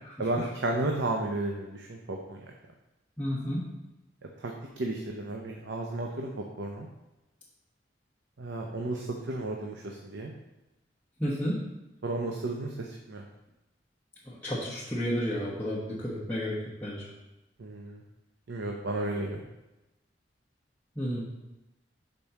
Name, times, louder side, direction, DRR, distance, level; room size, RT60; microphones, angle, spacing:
voice 1, 0.2-2.5 4.4-6.9 8.4-10.3 12.0-13.2 17.6-18.0 18.5-19.4, right 2 dB, 90° right, 1 dB, 0.7 m, -33 dB
voice 2, 3.2-3.7 11.2-11.6 14.3-17.1 21.0-21.2, equal, 10° left, -9 dB, 1.1 m, -32 dB
5.3 x 4.1 x 5.8 m, 0.98 s
head